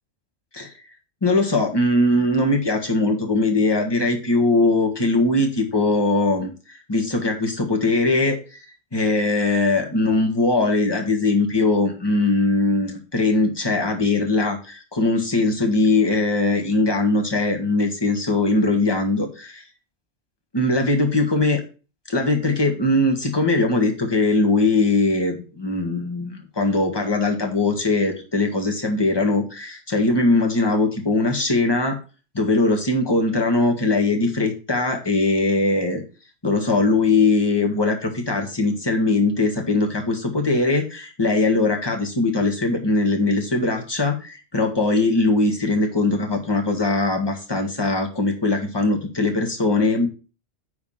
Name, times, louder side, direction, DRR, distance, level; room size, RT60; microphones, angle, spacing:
voice 1, 1.2-8.6 8.9-19.6 20.5-21.6 22.1-32.0 32.3-36.0 36.4-50.1, left 2 dB, 20° left, 3 dB, 1.6 m, -21 dB
9.8 x 3.6 x 5.6 m, 0.33 s
omnidirectional pair, 1.3 m